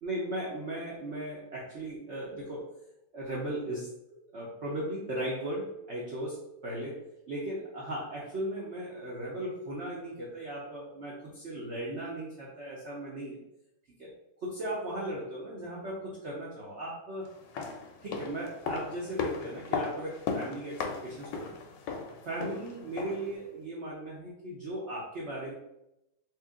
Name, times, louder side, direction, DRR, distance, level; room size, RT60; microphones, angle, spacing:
voice 1, 0.0-2.8 3.1-3.9 4.3-13.4 14.0-14.1 14.4-17.3 18.0-21.5 22.2-25.5, right 1 dB, 85° right, -5 dB, 0.6 m, -37 dB
sound 1, 17.3-23.3 23.6-23.7, left 5 dB, 75° left, 1.1 m, -36 dB
3.0 x 2.9 x 3.6 m, 0.85 s
omnidirectional pair, 2.3 m